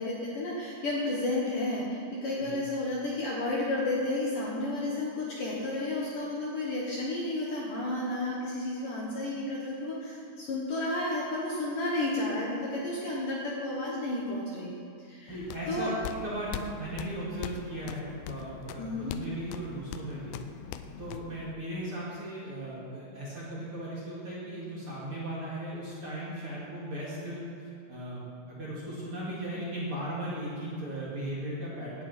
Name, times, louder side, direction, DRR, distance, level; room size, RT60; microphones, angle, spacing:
voice 1, 0.0-15.4 15.7-15.9 18.8-19.1, left 2 dB, 60° left, -4 dB, 2.5 m, -32 dB
sound 1, 15.3-21.5, left 9 dB, 85° left, 2.5 m, -42 dB
voice 2, 15.3-20.4 21.0-32.0, right 1 dB, 35° right, -8 dB, 2.6 m, -37 dB
17.5 x 11.5 x 4.5 m, 2.5 s
omnidirectional pair, 5.4 m